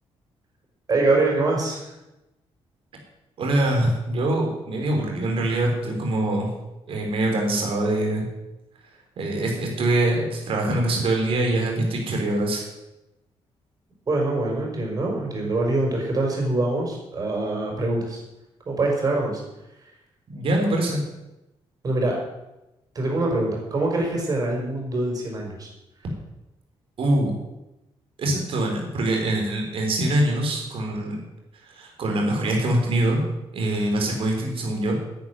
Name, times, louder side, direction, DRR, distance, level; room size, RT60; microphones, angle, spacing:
voice 1, 0.9-1.9 14.1-18.2 18.7-19.4 21.8-22.2 23.0-25.7, right 2 dB, 35° right, 0 dB, 5.3 m, -24 dB
voice 2, 3.4-6.5 6.9-8.3 9.2-12.6 20.3-21.0 27.0-27.4 28.2-31.2 31.6-33.2 33.5-35.0, right 1 dB, 60° right, 1 dB, 4.2 m, -24 dB
11.0 x 9.7 x 9.8 m, 0.96 s
wide cardioid pair, 155°, 11 cm